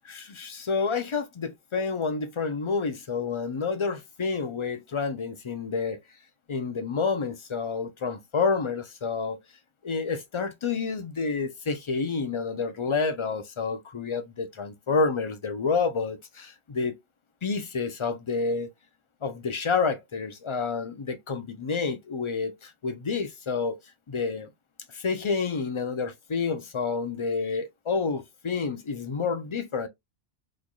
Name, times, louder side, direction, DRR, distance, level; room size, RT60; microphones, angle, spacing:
voice 1, 0.0-6.0 6.5-9.4 9.8-17.0 17.4-18.7 19.2-23.8 24.1-24.5 24.9-29.9, left 4 dB, 40° left, 0.4 m, -29 dB
4.0 x 3.2 x 2.2 m
omnidirectional pair, 1.1 m